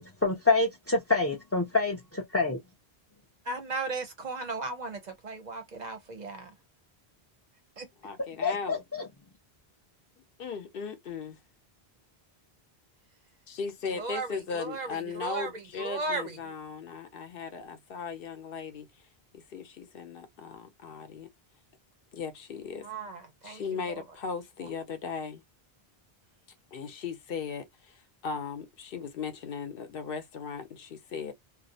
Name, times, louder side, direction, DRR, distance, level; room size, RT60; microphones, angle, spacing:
voice 1, 0.0-2.6 8.4-9.0, left 3 dB, 25° left, 0.3 m, -27 dB
voice 2, 3.5-6.5 7.8-7.9 14.0-16.5 22.8-24.0, right 3 dB, 50° right, 0.6 m, -36 dB
voice 3, 8.0-8.8 10.4-11.4 13.5-18.9 19.3-21.3 22.1-22.9 23.4-25.4 26.7-31.3, left 5 dB, 65° left, 0.8 m, -37 dB
2.5 x 2.0 x 2.6 m
omnidirectional pair, 1.1 m